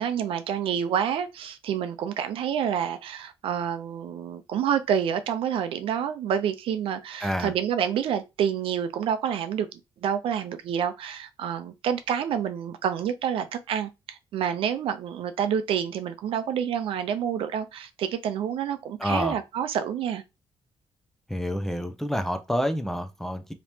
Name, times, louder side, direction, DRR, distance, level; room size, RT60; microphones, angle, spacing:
voice 1, 0.0-9.7 10.0-20.2, right 8 dB, 75° right, 0.5 m, -28 dB
voice 2, 7.2-7.5 19.0-19.4 21.3-23.5, equal, 5° left, 0.3 m, -28 dB
2.9 x 2.7 x 3.3 m
cardioid pair, 165°, 9 cm